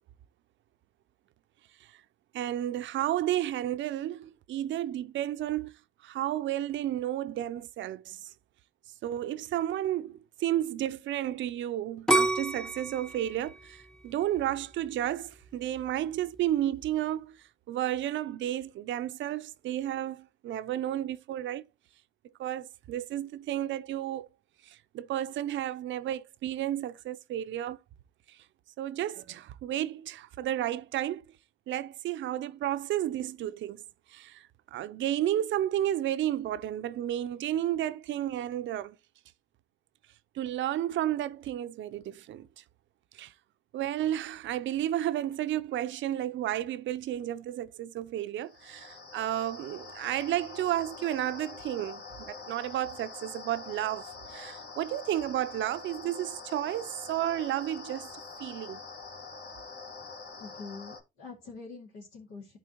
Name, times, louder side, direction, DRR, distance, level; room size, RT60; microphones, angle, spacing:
voice 1, 2.3-5.7 6.0-8.3 9.0-21.6 22.4-24.3 24.6-27.8 28.3-28.4 28.8-31.2 31.7-33.8 34.1-39.0 40.3-42.6 43.1-43.3 43.7-58.1 58.4-58.8, right 12 dB, 65° right, 0.6 m, -32 dB
sound 1, 12.1-15.0 15.5-16.0, right 2 dB, 5° left, 0.7 m, -29 dB
sound 2, 48.4-61.0, left 4 dB, 55° left, 1.6 m, -45 dB
voice 2, 60.4-62.6, left 4 dB, 85° left, 2.5 m, -45 dB
11.5 x 4.3 x 2.9 m
supercardioid pair, 55°, 21 cm